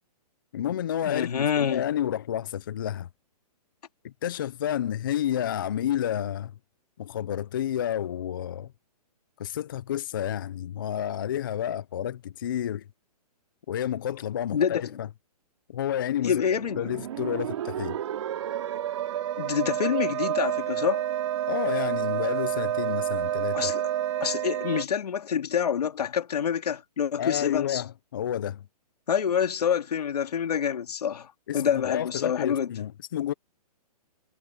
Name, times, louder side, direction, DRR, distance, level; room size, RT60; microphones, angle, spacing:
voice 1, 0.5-3.1 4.0-6.5 7.0-8.7 9.4-12.8 13.7-15.1 15.7-16.4 16.8-18.0 21.5-23.7 27.2-28.6 31.5-33.3, left 10 dB, 35° left, 0.4 m, -30 dB
voice 2, 1.1-1.8 14.5-14.9 16.2-16.9 19.4-21.0 23.5-23.8 24.2-27.8 29.1-32.7, left 8 dB, 75° left, 2.4 m, -27 dB
sound 1, 16.4-24.8, right 11 dB, 45° right, 3.2 m, -29 dB
hypercardioid pair, 170°, 20 cm